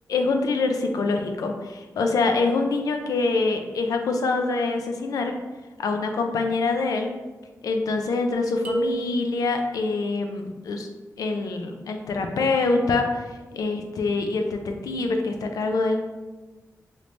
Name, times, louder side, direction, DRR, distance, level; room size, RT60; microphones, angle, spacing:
voice 1, 0.1-5.3 5.8-7.1 7.6-10.9 11.2-16.0, left 3 dB, 90° left, 4 dB, 0.4 m, -25 dB
sound 1, 8.6-9.8, right 2 dB, 25° right, 0.5 m, -30 dB
3.2 x 2.6 x 3.2 m, 1.2 s
wide cardioid pair, 115°, 6 cm